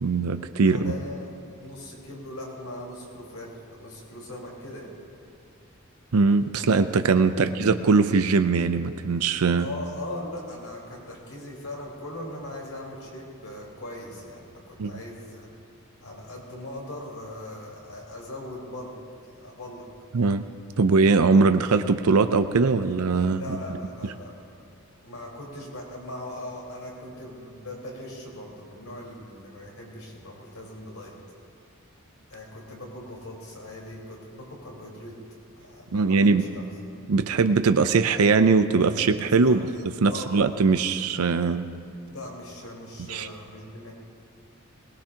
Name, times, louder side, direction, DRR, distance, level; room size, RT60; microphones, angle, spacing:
voice 1, 0.0-0.9 6.1-9.7 14.8-14.9 20.1-20.4 20.8-23.6 35.9-36.4 37.1-39.6 40.0-41.7 43.1-43.3, right 4 dB, 85° right, 9 dB, 0.6 m, -21 dB
voice 2, 0.6-1.3 1.6-4.9 7.4-7.5 9.6-15.5 16.0-18.9 19.3-19.9 23.4-24.4 25.0-31.1 32.3-35.2 35.6-36.6 39.4-39.6 40.1-40.5 42.1-43.9, left 1 dB, 85° left, -3 dB, 4.3 m, -40 dB
21.5 x 19.0 x 2.9 m, 2.5 s
head